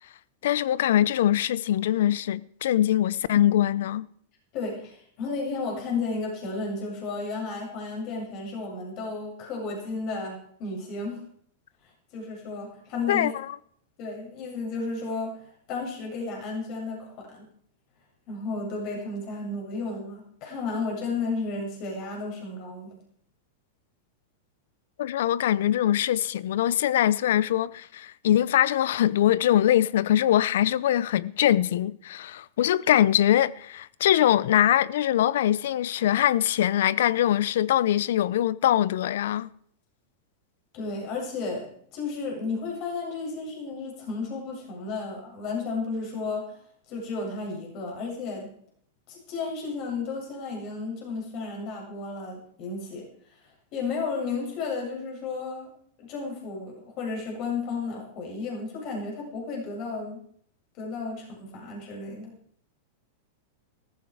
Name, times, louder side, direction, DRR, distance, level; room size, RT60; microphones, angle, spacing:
voice 1, 0.4-4.1 13.1-13.6 25.0-39.5, left 12 dB, 75° left, 0.6 m, -23 dB
voice 2, 4.5-11.3 12.1-13.3 14.0-17.5 18.3-23.0 40.7-46.6 46.9-48.5 49.1-53.1 53.4-55.7 56.0-60.2 60.8-62.3, left 3 dB, 50° left, 7.6 m, -33 dB
14.5 x 14.5 x 4.8 m
hypercardioid pair, 120°, 0 cm